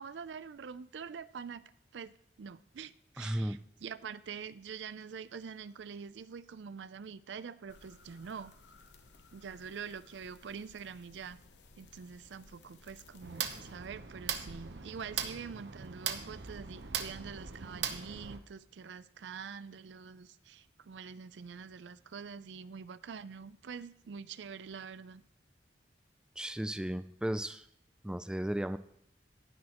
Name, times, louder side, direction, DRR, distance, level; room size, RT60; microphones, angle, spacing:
voice 1, 0.0-1.6 1.9-8.5 9.3-11.4 11.8-25.2, right 6 dB, 90° right, 16 dB, 0.4 m, -45 dB
voice 2, 3.2-3.6 26.4-27.7 28.0-28.8, right 1 dB, 5° right, 12 dB, 0.3 m, -35 dB
sound 1, 7.7-13.8, left 3 dB, 80° left, 0.8 m, -59 dB
sound 2, 13.2-18.4, right 7 dB, 70° right, 0.8 m, -39 dB
19.0 x 6.3 x 3.0 m, 0.73 s
head